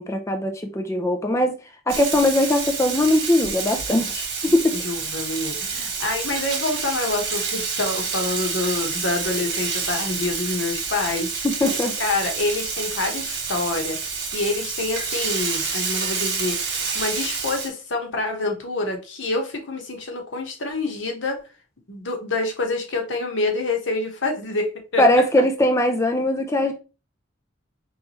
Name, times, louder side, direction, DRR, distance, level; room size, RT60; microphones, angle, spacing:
voice 1, 0.0-1.5 1.9-4.3 4.5-4.7 11.6-11.9 25.0-26.7, left 1 dB, 15° left, 0.5 m, -20 dB
Frying (food), 1.9-17.7, right 5 dB, 60° right, 1.7 m, -28 dB
voice 2, 4.7-11.3 12.0-21.5 21.9-25.2, left 2 dB, 75° left, 1.2 m, -27 dB
4.6 x 3.3 x 3.0 m
head